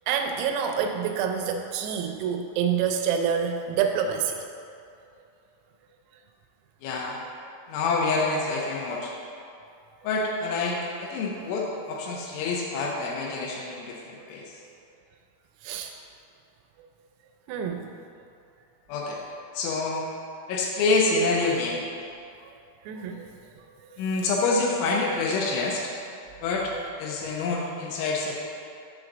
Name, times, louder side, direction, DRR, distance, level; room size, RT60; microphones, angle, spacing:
voice 1, 0.1-4.4 15.6-15.9 17.5-17.9 22.9-23.3, right 7 dB, 90° right, 4 dB, 3.3 m, -27 dB
voice 2, 6.8-7.2 7.7-9.1 10.0-14.4 18.9-19.2 19.5-20.0 20.5-21.8 24.0-25.9 26.4-26.7 27.0-28.3, left 3 dB, 80° left, -2 dB, 3.0 m, -27 dB
7.6 x 3.9 x 6.0 m, 2.5 s
omnidirectional pair, 5.8 m